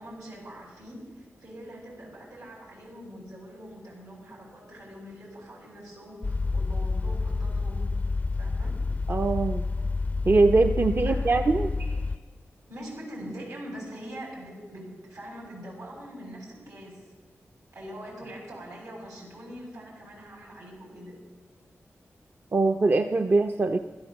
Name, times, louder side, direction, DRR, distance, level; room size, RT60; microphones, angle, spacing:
voice 1, 0.0-7.9 8.3-8.8 11.0-11.5 11.8-12.0 12.7-17.1 17.7-21.2, equal, 80° right, -5 dB, 6.7 m, -43 dB
sound 1, 6.2-12.2, left 3 dB, 30° left, 0.4 m, -29 dB
voice 2, 9.1-9.7 10.2-11.7 22.5-23.8, right 3 dB, 40° right, 6 dB, 0.6 m, -22 dB
16.0 x 12.5 x 7.1 m, 1.3 s
wide cardioid pair, 110°, 5 cm